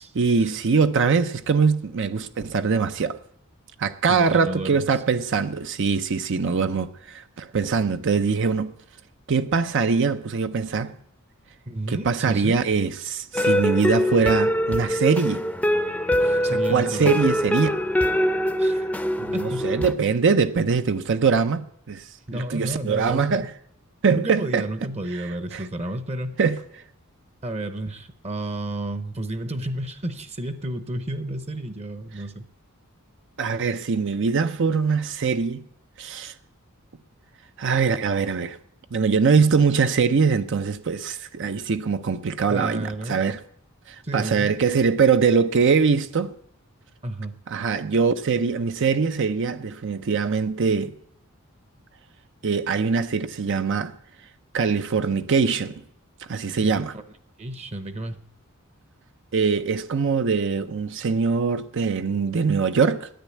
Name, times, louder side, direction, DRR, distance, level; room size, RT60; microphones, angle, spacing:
voice 1, 0.2-3.2 3.8-8.7 9.3-10.9 11.9-15.4 16.5-17.7 19.2-23.5 24.0-24.6 25.1-25.6 26.4-26.6 33.4-35.6 36.0-36.3 37.6-38.6 38.9-43.4 43.9-46.4 47.5-51.0 52.4-53.9 54.5-55.8 56.3-56.9 59.3-63.1, right 5 dB, 60° right, 0.6 m, -22 dB
voice 2, 4.1-4.8 11.7-12.6 16.2-17.2 18.6-18.9 19.3-19.7 22.3-23.5 24.1-26.4 27.4-32.5 42.5-43.2 44.0-44.5 47.0-47.4 56.6-57.0 57.4-58.2, right 1 dB, 30° right, 0.8 m, -31 dB
sound 1, 13.3-19.9, equal, 5° left, 0.6 m, -23 dB
10.5 x 9.2 x 9.1 m
head